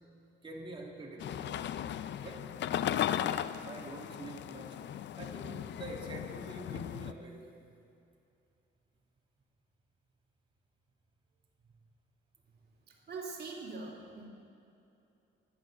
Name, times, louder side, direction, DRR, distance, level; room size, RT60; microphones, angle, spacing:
voice 1, 0.4-1.7 2.2-2.5 2.8-4.8 5.2-7.5, right 2 dB, 25° right, -2 dB, 2.6 m, -46 dB
sound 1, 1.2-7.1, left 10 dB, 65° left, 0.6 m, -36 dB
voice 2, 12.9-14.3, right 4 dB, 55° right, 1 dB, 2.7 m, -43 dB
15.0 x 11.0 x 7.8 m, 2.8 s
cardioid pair, 90°, 20 cm